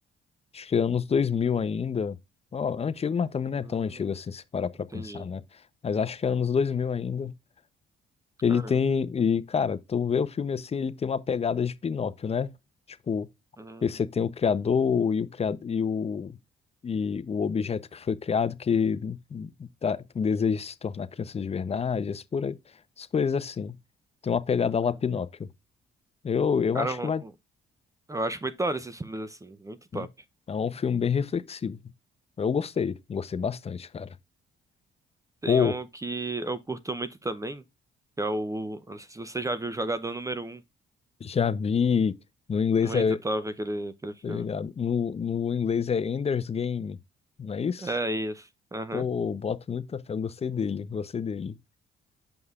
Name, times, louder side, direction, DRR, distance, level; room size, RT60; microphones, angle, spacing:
voice 1, 0.5-2.2 2.5-5.4 5.8-7.3 8.4-12.5 13.1-13.3 13.8-16.4 16.8-22.6 23.0-23.8 24.2-25.5 26.2-27.2 29.9-30.1 30.5-31.8 32.4-34.1 35.5-35.7 41.2-42.1 42.5-43.2 44.2-47.0 47.4-47.9 48.9-51.6, left 6 dB, 30° left, 0.6 m, -27 dB
voice 2, 3.6-4.1 4.9-5.3 8.5-8.8 13.6-13.9 26.7-27.3 28.1-30.1 35.4-37.6 38.2-40.6 42.8-44.5 47.8-49.0, right 2 dB, 15° right, 0.6 m, -33 dB
7.8 x 5.4 x 2.3 m
cardioid pair, 90°, 20 cm